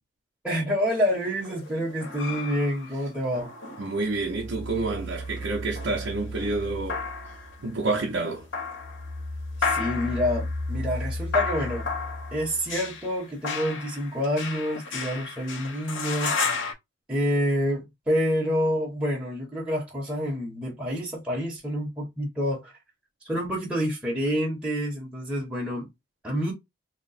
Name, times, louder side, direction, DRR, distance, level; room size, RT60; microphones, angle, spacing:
voice 1, 0.4-3.5 9.6-11.9 12.3-16.7 17.1-22.7 23.2-25.9 26.2-26.5, equal, 5° right, 0.9 m, -28 dB
sound 1, 0.9-4.5 5.1-7.7 8.3-9.2 9.6-16.7, left 5 dB, 85° left, 0.9 m, -33 dB
voice 2, 3.8-7.0 7.6-8.5, right 3 dB, 75° right, 0.6 m, -28 dB
sound 2, 4.0-7.9 8.3-12.9, left 1 dB, 30° left, 0.5 m, -35 dB
2.9 x 2.0 x 4.0 m
head